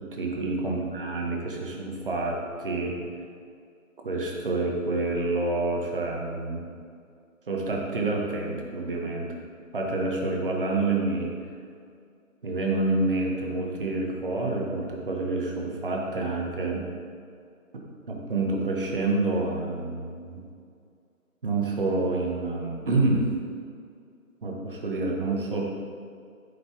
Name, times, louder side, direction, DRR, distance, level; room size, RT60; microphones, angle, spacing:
voice 1, 0.0-2.9 4.0-6.6 7.5-9.3 9.7-11.3 12.4-16.8 18.1-20.4 21.4-23.3 24.4-25.6, right 2 dB, 40° right, -1 dB, 1.5 m, -28 dB
12.0 x 5.8 x 3.6 m, 2.2 s
figure-of-eight pair, 155°, 42 cm